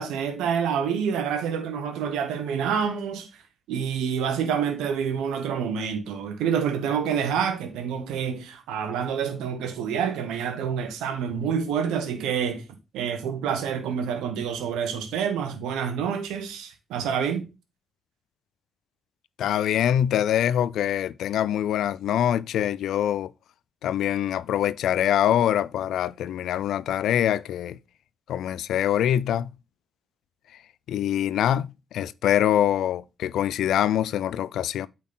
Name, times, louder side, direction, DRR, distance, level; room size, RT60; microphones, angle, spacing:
voice 1, 0.0-3.3 3.7-12.7 12.9-17.5, right 7 dB, 85° right, 1.1 m, -27 dB
voice 2, 19.4-23.3 23.8-27.8 28.3-29.5 30.9-34.9, left 10 dB, 75° left, 0.3 m, -24 dB
8.4 x 4.2 x 3.8 m
supercardioid pair, 50°, 0 cm